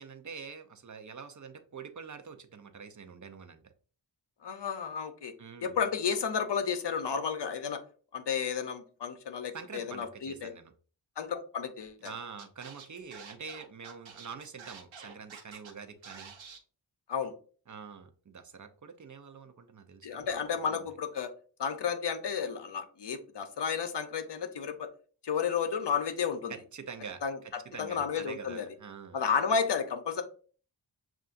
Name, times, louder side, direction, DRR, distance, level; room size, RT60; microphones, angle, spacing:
voice 1, 0.0-3.7 5.4-5.8 9.5-10.7 12.0-16.3 17.7-20.3 20.7-20.9 26.5-29.2, right 6 dB, 40° right, 7 dB, 0.6 m, -46 dB
voice 2, 4.4-5.3 5.6-7.8 8.1-10.5 11.2-12.1 17.1-17.3 20.0-21.3 21.6-24.9 25.2-26.5 27.2-27.4 27.8-28.6 29.1-30.2, left 6 dB, 60° left, 8 dB, 0.7 m, -32 dB
Scratching (performance technique), 12.0-12.1 12.4-15.7 16.0-16.6, right 5 dB, 75° right, 0.9 m, -48 dB
6.6 x 2.5 x 2.5 m, 0.41 s
wide cardioid pair, 75°, 47 cm